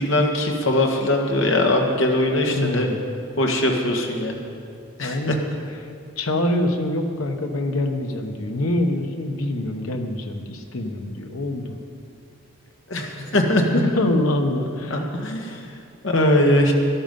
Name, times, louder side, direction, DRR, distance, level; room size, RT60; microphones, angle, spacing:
voice 1, 0.0-2.9 3.4-4.4 5.0-5.3 12.9-13.6 14.9-15.6 16.0-16.7, left 1 dB, 70° left, 2 dB, 1.6 m, -21 dB
voice 2, 2.5-3.0 5.0-5.4 6.2-11.8 13.7-15.1, left 1 dB, 90° left, 5 dB, 1.2 m, -25 dB
13.0 x 11.5 x 5.4 m, 2.4 s
head